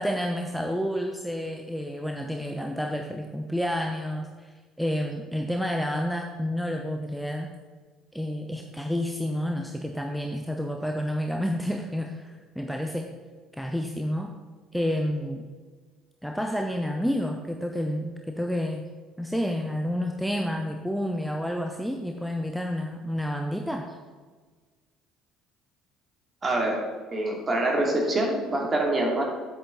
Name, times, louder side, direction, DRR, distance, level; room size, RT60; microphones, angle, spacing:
voice 1, 0.0-7.5 8.1-13.1 13.5-14.3 14.7-15.5 16.2-18.8 19.2-23.8, equal, ahead, 3 dB, 0.8 m, -29 dB
voice 2, 26.4-26.8 27.1-29.2, right 1 dB, 30° right, -1 dB, 2.7 m, -25 dB
9.1 x 8.5 x 4.0 m, 1.4 s
figure-of-eight pair, 55°, 0 cm